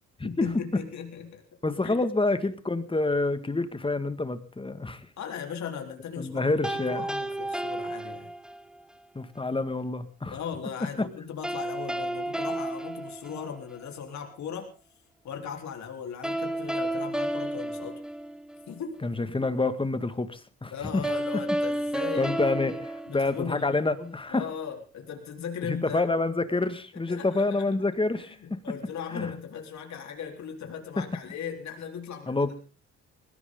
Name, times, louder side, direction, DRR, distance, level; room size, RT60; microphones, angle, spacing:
voice 1, 0.2-1.4 1.8-2.0 5.2-8.3 10.3-14.7 15.2-18.0 18.7-19.0 20.7-22.3 23.1-23.9 24.3-26.0 27.1-27.7 28.1-32.5, left 7 dB, 65° left, 3 dB, 4.0 m, -38 dB
voice 2, 1.6-5.1 6.2-7.1 9.2-10.4 11.0-11.1 19.0-21.0 21.3-21.4 22.1-24.4 25.7-28.4 29.1-29.3 32.3-32.5, left 2 dB, 15° left, 11 dB, 2.0 m, -27 dB
sound 1, 6.6-8.8 11.4-13.9 16.2-18.8 21.0-23.9, right 1 dB, 5° right, 1.4 m, -32 dB
20.5 x 16.5 x 3.9 m, 0.37 s
cardioid pair, 90°, 30 cm